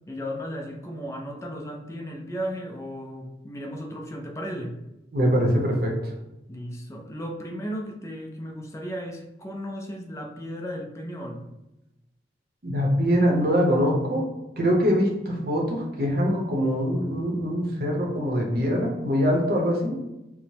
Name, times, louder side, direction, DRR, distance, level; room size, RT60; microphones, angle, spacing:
voice 1, 0.1-4.8 6.5-11.5, equal, 15° left, 1 dB, 0.4 m, -35 dB
voice 2, 5.1-5.9 12.6-14.2 14.6-20.0, equal, 55° right, -1 dB, 0.7 m, -23 dB
4.5 x 2.0 x 2.8 m, 0.95 s
head